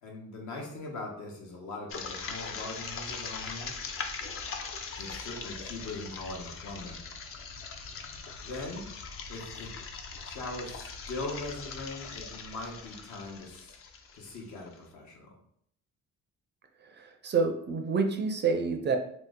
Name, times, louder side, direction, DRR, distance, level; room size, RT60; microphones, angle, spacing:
voice 1, 0.0-3.8 5.0-7.0 8.4-8.9 9.3-9.7 10.2-13.8 14.1-15.3, left 2 dB, 75° left, -1 dB, 1.0 m, -40 dB
sound 1, 1.9-14.7, left 5 dB, 45° left, 0.5 m, -41 dB
voice 2, 16.8-19.0, right 4 dB, 35° right, 5 dB, 0.4 m, -28 dB
2.8 x 2.1 x 3.5 m, 0.69 s
cardioid pair, 90°, 30 cm